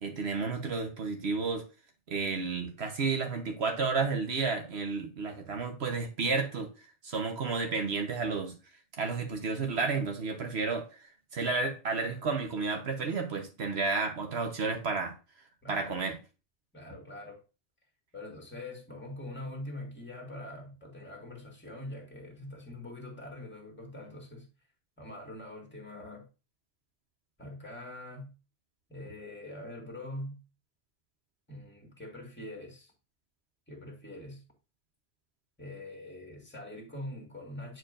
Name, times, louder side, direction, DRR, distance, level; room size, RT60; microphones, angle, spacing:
voice 1, 0.0-1.6 2.1-6.7 7.0-8.5 9.0-15.1 15.7-16.2, right 4 dB, 65° right, 1.2 m, -31 dB
voice 2, 15.6-16.0 16.7-17.4 18.1-24.5 25.0-26.3 27.4-28.3 28.9-30.4 31.5-32.9 33.7-34.4 35.6-37.8, left 1 dB, 10° left, 1.9 m, -43 dB
9.2 x 4.6 x 2.5 m
omnidirectional pair, 1.2 m